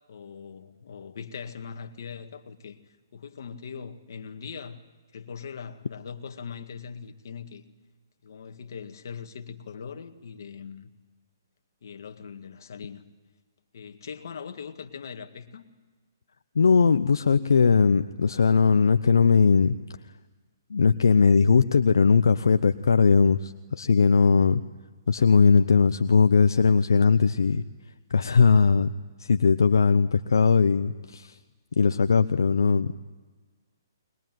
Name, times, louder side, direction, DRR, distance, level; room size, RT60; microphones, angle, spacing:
voice 1, 0.1-2.8 3.1-4.8 5.1-7.6 8.2-10.9 11.8-13.0 13.7-15.6, left 6 dB, 65° left, 6 dB, 2.0 m, -40 dB
voice 2, 16.6-19.7 20.7-24.6 25.1-27.6 28.1-28.9 29.2-31.4 31.8-32.9, left 5 dB, 85° left, 11 dB, 0.8 m, -19 dB
22.0 x 21.5 x 9.3 m, 1.3 s
hypercardioid pair, 150°, 2 cm